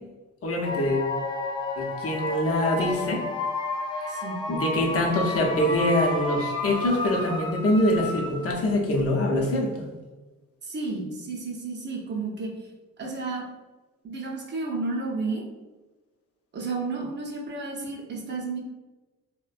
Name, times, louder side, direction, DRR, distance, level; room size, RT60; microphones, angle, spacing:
voice 1, 0.4-1.1 1.8-3.2 3.9-9.9, left 1 dB, 50° left, 0 dB, 0.6 m, -25 dB
sound 1, 0.6-8.7, left 2 dB, 15° left, 0.3 m, -31 dB
voice 2, 4.1-4.4 10.6-12.5 13.0-13.4 14.0-15.4 16.5-18.6, right 3 dB, 35° right, -1 dB, 0.6 m, -32 dB
2.5 x 2.1 x 2.4 m, 1.2 s
cardioid pair, 90°, 30 cm